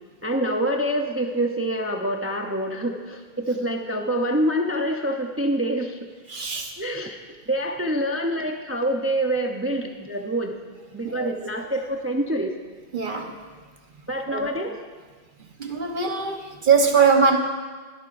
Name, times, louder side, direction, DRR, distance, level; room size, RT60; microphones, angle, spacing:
voice 1, 0.2-6.0 6.8-7.2 7.5-10.5 10.9-12.6 14.1-14.8, right 1 dB, 15° right, 3 dB, 0.5 m, -26 dB
voice 2, 6.3-6.7 11.0-11.3 12.9-13.3 14.3-14.5 15.6-17.4, right 5 dB, 50° right, 3 dB, 1.2 m, -21 dB
22.0 x 8.8 x 2.5 m, 1.4 s
omnidirectional pair, 1.1 m